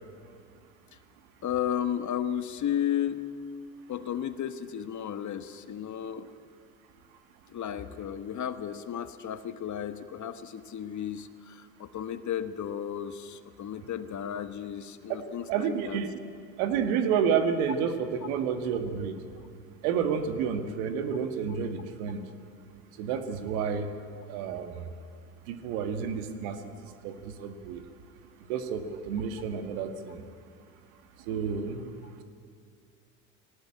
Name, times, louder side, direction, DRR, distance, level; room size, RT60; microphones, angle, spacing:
voice 1, 1.4-3.2 3.9-6.3 7.5-16.0, left 9 dB, 40° left, 11 dB, 1.3 m, -33 dB
voice 2, 15.5-16.2 16.6-19.2 19.8-22.2 23.0-23.9 24.3-24.9 25.5-26.6 27.0-27.8 28.5-30.2 31.3-31.9, right 7 dB, 75° right, 8 dB, 1.9 m, -30 dB
19.0 x 18.0 x 8.8 m, 2.4 s
hypercardioid pair, 80°, 43 cm